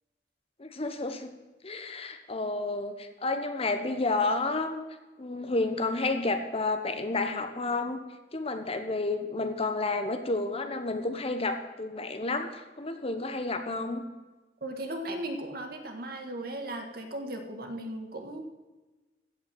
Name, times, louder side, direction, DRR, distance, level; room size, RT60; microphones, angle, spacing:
voice 1, 0.6-1.3 1.6-4.8 5.2-8.0 8.3-14.0, left 3 dB, 35° left, 7 dB, 1.1 m, -30 dB
voice 2, 14.6-18.4, right 1 dB, 60° right, 5 dB, 1.7 m, -37 dB
15.0 x 5.9 x 7.7 m, 1.2 s
head